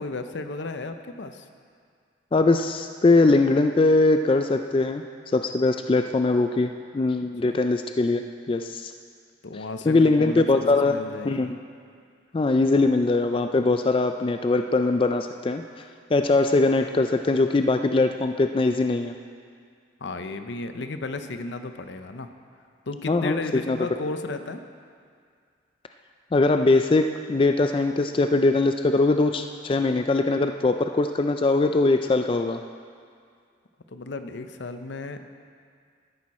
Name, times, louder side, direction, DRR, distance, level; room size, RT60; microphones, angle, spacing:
voice 1, 0.0-1.4 7.4-7.6 9.4-11.5 20.0-22.3 22.9-24.6 33.9-35.4, left 3 dB, 75° left, 8 dB, 0.7 m, -34 dB
voice 2, 2.3-5.0 5.3-8.2 8.5-8.9 9.9-10.9 11.2-11.6 12.3-15.6 16.1-19.1 23.1-23.4 23.7-23.8 26.3-32.6, left 3 dB, 30° left, 7 dB, 0.3 m, -21 dB
13.0 x 11.0 x 4.2 m, 2.1 s
head